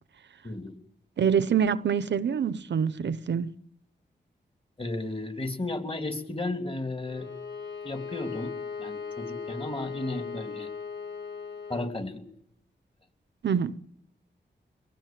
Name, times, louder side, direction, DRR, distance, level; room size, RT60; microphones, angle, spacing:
voice 1, 0.4-0.8 4.8-7.3 7.8-8.5 8.8-10.7 11.7-12.2, left 2 dB, 30° left, 3.0 m, -34 dB
voice 2, 1.2-3.5 13.4-13.8, right 7 dB, 80° right, 0.8 m, -25 dB
Bowed string instrument, 7.0-12.0, left 5 dB, 85° left, 6.4 m, -38 dB
23.5 x 18.0 x 7.6 m
cardioid pair, 65°, 18 cm